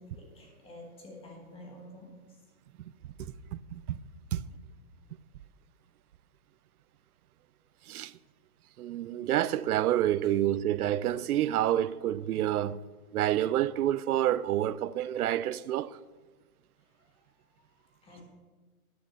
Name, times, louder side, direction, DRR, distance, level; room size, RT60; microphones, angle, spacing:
voice 1, 0.0-2.4 3.2-3.3 4.3-4.4 10.2-10.3 16.8-18.2, left 1 dB, 10° left, 1.6 m, -51 dB
voice 2, 3.2-4.0 4.3-4.4 7.9-8.1 8.8-12.8 13.1-16.0, right 12 dB, 80° right, 0.6 m, -28 dB
9.5 x 6.0 x 6.8 m
hypercardioid pair, 155°, 45 cm